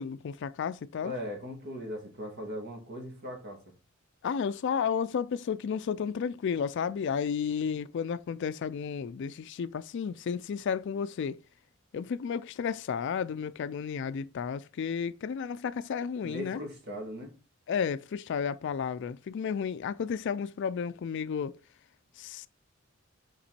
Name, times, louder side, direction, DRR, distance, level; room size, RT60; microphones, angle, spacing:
voice 1, 0.0-1.1 4.2-11.4 11.9-16.6 17.7-21.6 22.2-22.5, left 6 dB, 60° left, 0.4 m, -32 dB
voice 2, 1.0-3.6 16.2-17.3, equal, 55° right, 2.4 m, -39 dB
5.7 x 5.3 x 4.2 m
head